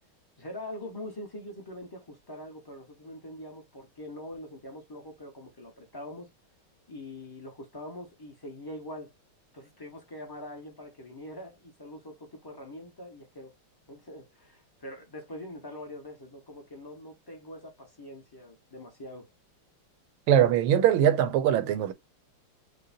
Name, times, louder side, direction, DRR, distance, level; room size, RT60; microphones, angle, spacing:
voice 1, 0.4-6.3 6.9-9.1 9.5-13.5 13.9-19.3, left 1 dB, 20° left, 0.6 m, -43 dB
voice 2, 20.3-21.9, right 10 dB, 75° right, 1.5 m, -22 dB
6.5 x 2.2 x 2.6 m
omnidirectional pair, 2.4 m